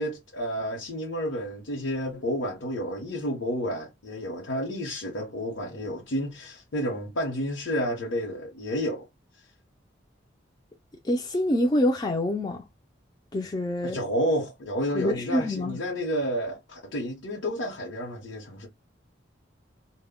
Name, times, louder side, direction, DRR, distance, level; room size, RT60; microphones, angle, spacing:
voice 1, 0.0-9.1 13.8-18.7, equal, 90° left, 0.8 m, -30 dB
voice 2, 11.0-12.6 13.3-14.0 14.9-15.8, left 1 dB, 20° left, 0.3 m, -26 dB
2.1 x 2.1 x 3.6 m
head